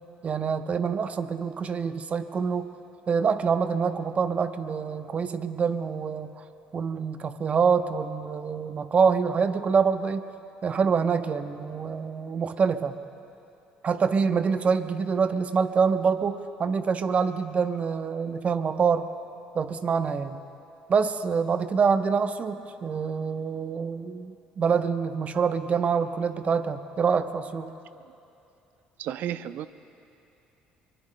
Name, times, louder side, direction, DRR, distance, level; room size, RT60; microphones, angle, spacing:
voice 1, 0.2-2.7 3.1-6.4 6.7-10.3 10.6-13.0 13.8-19.1 19.5-20.4 20.9-27.7, right 6 dB, 40° right, 9 dB, 0.8 m, -26 dB
voice 2, 29.0-29.7, right 11 dB, 65° right, 13 dB, 0.5 m, -33 dB
24.0 x 23.0 x 2.2 m, 2.7 s
hypercardioid pair, 65°, 3 cm